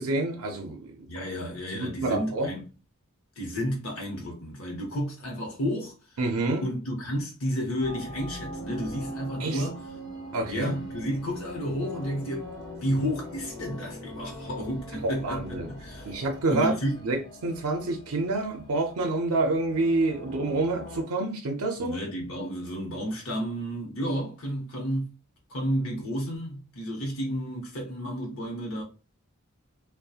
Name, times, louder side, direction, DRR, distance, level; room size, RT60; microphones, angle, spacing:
voice 1, 0.0-1.1 1.7-2.5 6.2-6.6 9.4-9.6 10.3-10.8 15.0-15.7 16.1-16.7 17.0-22.0, right 2 dB, 80° right, 0.5 m, -28 dB
voice 2, 1.1-2.6 3.4-6.2 6.6-9.8 10.5-12.5 12.8-16.2 16.5-17.0 21.8-25.2 25.5-28.8, equal, 65° left, 0.8 m, -31 dB
sound 1, 7.8-21.0, equal, 20° left, 0.9 m, -42 dB
2.7 x 2.1 x 2.3 m
head